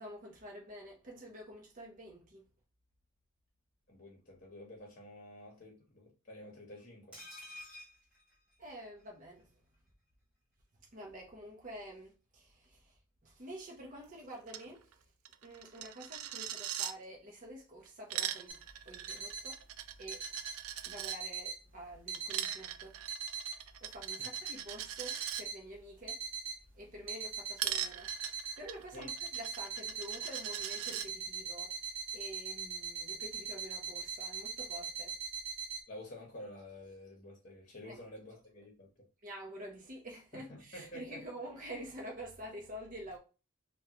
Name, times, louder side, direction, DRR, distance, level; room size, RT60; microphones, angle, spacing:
voice 1, 0.0-2.4 8.6-9.5 10.9-12.9 13.2-14.9 15.4-18.6 18.9-19.6 20.0-20.2 20.8-22.9 23.8-26.2 26.8-28.1 28.6-31.7 32.1-35.2 37.8-37.9 39.2-43.2, right 1 dB, 35° right, 0.6 m, -48 dB
voice 2, 3.9-7.2 24.2-24.3 28.9-29.1 35.9-39.1 40.3-41.2, left 1 dB, 35° left, 1.0 m, -50 dB
sound 1, 7.1-9.1 9.4-9.5 9.7-9.9, left 1 dB, 5° right, 1.1 m, -51 dB
Coin (dropping), 14.5-14.6 14.9-15.0 15.2-16.9 17.9-21.2 22.1-25.4 27.6-31.1, right 11 dB, 75° right, 0.3 m, -41 dB
sound 2, 18.5-35.8, right 5 dB, 60° right, 1.0 m, -42 dB
3.6 x 2.2 x 2.8 m
head